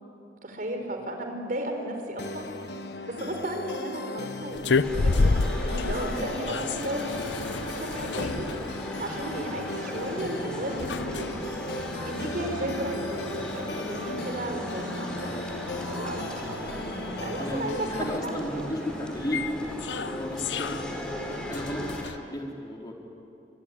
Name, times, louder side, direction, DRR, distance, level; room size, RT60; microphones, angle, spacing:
voice 1, 0.4-2.5 3.0-8.5 9.0-11.3 12.0-16.5 17.2-18.7, right 1 dB, 50° right, 4 dB, 4.4 m, -34 dB
sound 1, 2.2-18.2, left 2 dB, 65° left, 1.3 m, -38 dB
sound 2, 4.5-22.2, left 3 dB, 90° left, 0.7 m, -33 dB
sound 3, 4.8-22.0, equal, 5° left, 4.8 m, -37 dB
voice 2, 17.3-22.9, equal, 25° left, 0 dB, 4.0 m, -35 dB
25.0 x 23.5 x 10.0 m, 2.8 s
head